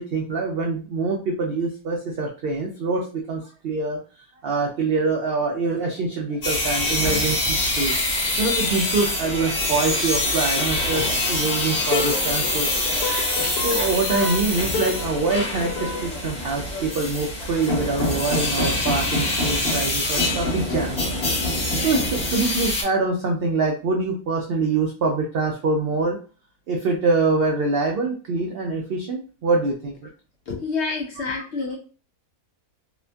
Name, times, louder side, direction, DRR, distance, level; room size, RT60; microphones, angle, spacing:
voice 1, 0.0-4.0 4.4-7.9 8.4-12.7 13.6-21.1 21.4-21.6 21.8-26.2 26.7-30.1, right 3 dB, 80° right, 0 dB, 0.5 m, -25 dB
sound 1, 6.4-22.8, left 1 dB, 40° left, 1.2 m, -24 dB
sound 2, 11.9-16.1, left 5 dB, 90° left, 1.1 m, -31 dB
voice 2, 30.5-31.8, left 4 dB, 65° left, 0 dB, 0.7 m, -28 dB
2.8 x 2.2 x 2.5 m, 0.37 s
omnidirectional pair, 1.5 m